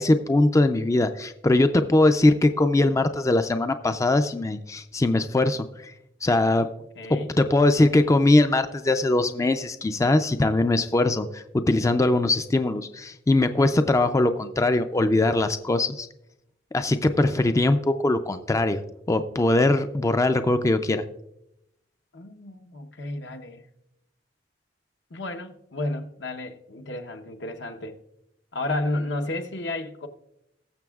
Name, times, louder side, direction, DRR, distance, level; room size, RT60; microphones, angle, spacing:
voice 1, 0.0-5.9 6.2-6.7 7.1-16.1 16.7-18.8 19.1-21.0, left 2 dB, 15° left, 0.4 m, -21 dB
voice 2, 7.0-7.3 22.1-23.6 25.1-28.0 28.5-30.1, left 2 dB, 75° left, 0.9 m, -32 dB
19.5 x 7.0 x 2.3 m
head